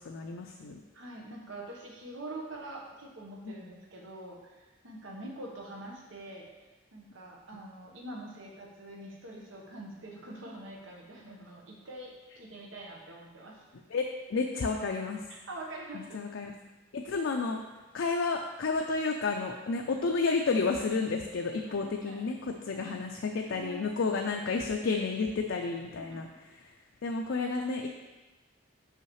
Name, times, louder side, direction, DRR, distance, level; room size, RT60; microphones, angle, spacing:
voice 1, 0.0-0.8 3.4-3.5 7.5-7.6 13.9-15.2 16.1-16.5 16.9-17.6 17.9-26.3 27.0-27.9, left 4 dB, 75° left, 2 dB, 0.4 m, -31 dB
voice 2, 0.9-6.5 6.9-13.6 15.3-16.3 19.7-20.1 21.8-22.2 22.7-22.9 23.5-24.0 26.1-26.2, right 1 dB, 90° right, -1 dB, 1.2 m, -45 dB
5.7 x 5.5 x 3.1 m, 1.2 s
head